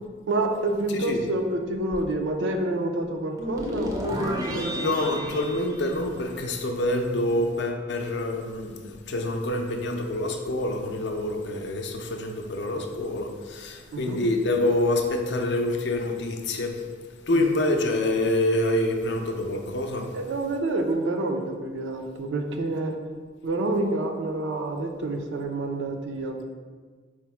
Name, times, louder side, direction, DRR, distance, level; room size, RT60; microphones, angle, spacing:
voice 1, 0.3-5.0 13.9-14.2 17.3-17.5 20.1-23.0 23.4-26.4, right 2 dB, 80° right, 4 dB, 0.4 m, -28 dB
sound 1, 3.4-6.6, equal, 20° right, 0.4 m, -32 dB
voice 2, 4.7-16.8 17.3-20.1, left 1 dB, 65° left, 3 dB, 0.4 m, -26 dB
4.4 x 2.0 x 4.4 m, 1.5 s
head